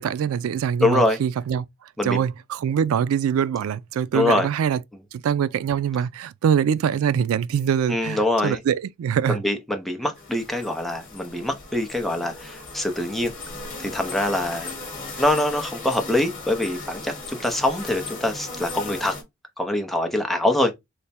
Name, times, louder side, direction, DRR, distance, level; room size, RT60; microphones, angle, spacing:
voice 1, 0.0-1.6 2.0-4.8 5.1-9.4, right 8 dB, 90° right, 0.3 m, -23 dB
voice 2, 0.8-1.2 2.0-2.2 4.1-4.5 7.9-8.6 9.3-13.3 13.8-14.7 15.2-19.2 19.6-20.7, left 1 dB, ahead, 0.6 m, -24 dB
sound 1, 10.2-19.2, left 3 dB, 40° left, 1.2 m, -37 dB
3.3 x 2.1 x 4.1 m
head